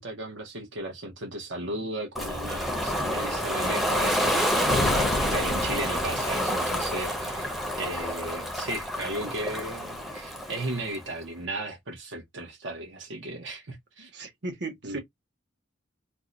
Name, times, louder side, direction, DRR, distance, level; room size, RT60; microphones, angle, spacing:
voice 1, 0.0-4.3 5.3-14.1 14.8-15.0, right 1 dB, 80° right, 0.8 m, -35 dB
Ocean, 2.1-11.0, equal, ahead, 0.5 m, -28 dB
sound 1, 4.7-6.9, left 2 dB, 50° left, 0.5 m, -31 dB
voice 2, 14.0-15.0, right 3 dB, 60° right, 1.0 m, -36 dB
2.6 x 2.1 x 3.7 m
head